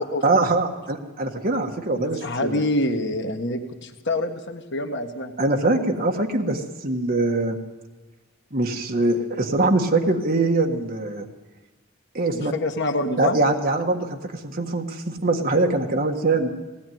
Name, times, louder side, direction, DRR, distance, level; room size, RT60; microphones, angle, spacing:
voice 1, 0.2-2.6 5.4-7.6 8.5-11.3 12.1-12.5 13.2-16.5, right 2 dB, 45° right, 3 dB, 1.7 m, -23 dB
voice 2, 2.0-5.3 12.3-13.4, left 1 dB, 55° left, 4 dB, 1.6 m, -26 dB
19.5 x 17.5 x 9.4 m, 1.1 s
head